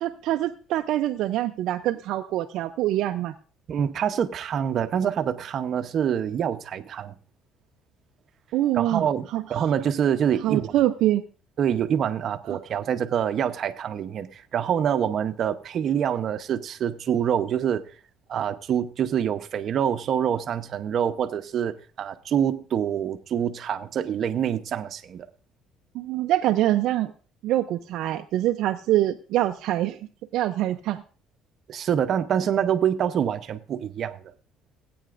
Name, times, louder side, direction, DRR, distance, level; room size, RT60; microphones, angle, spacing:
voice 1, 0.0-3.3 8.5-9.1 9.3-9.4 10.4-11.2 25.9-27.1 27.4-30.0 30.3-31.0, right 14 dB, 70° right, 0.5 m, -24 dB
voice 2, 3.7-7.2 8.7-10.7 11.6-17.9 18.3-25.3 31.7-34.3, right 8 dB, 45° right, 0.7 m, -26 dB
17.5 x 8.7 x 2.5 m
cardioid pair, 135°, 0 cm